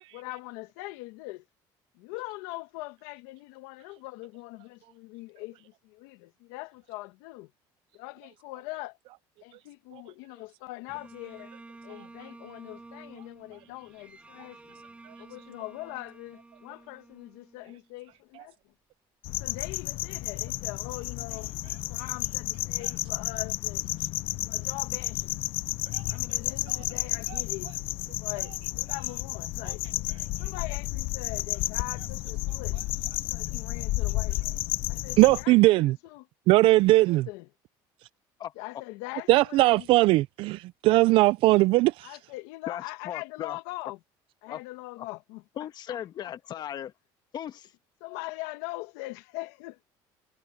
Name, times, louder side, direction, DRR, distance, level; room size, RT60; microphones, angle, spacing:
voice 1, 0.1-1.4 1.9-7.5 7.9-9.0 9.4-11.5 11.8-14.8 15.2-18.7 19.4-21.5 21.9-23.9 24.4-25.4 26.1-27.7 28.2-29.8 30.4-32.8 33.3-34.6 34.9-36.3 37.0-37.5 38.5-39.9 42.0-44.0 44.4-45.4 45.9-46.3 48.0-49.8, left 21 dB, 90° left, 1.6 m, -42 dB
Bowed string instrument, 10.9-18.1, right 3 dB, 15° right, 6.4 m, -51 dB
sound 1, 19.2-35.4, left 18 dB, 65° left, 0.6 m, -32 dB
voice 2, 35.2-35.9 36.5-37.3 39.3-42.1, right 19 dB, 65° right, 0.4 m, -20 dB
voice 3, 42.7-43.6 44.5-44.6 45.0-45.1 45.6-46.9 47.3-47.7, left 10 dB, 45° left, 1.4 m, -37 dB
cardioid pair, 125°, 10 cm